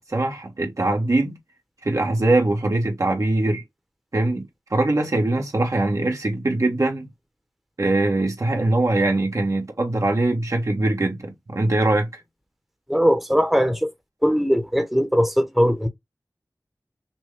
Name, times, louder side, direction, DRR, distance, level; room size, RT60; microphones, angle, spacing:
voice 1, 0.0-1.4 1.8-3.6 4.1-7.1 7.8-12.2, right 2 dB, 60° right, 1.4 m, -22 dB
voice 2, 12.9-13.9 14.2-15.9, equal, 5° right, 1.0 m, -20 dB
6.0 x 2.1 x 3.4 m
wide cardioid pair, 45°, 6 cm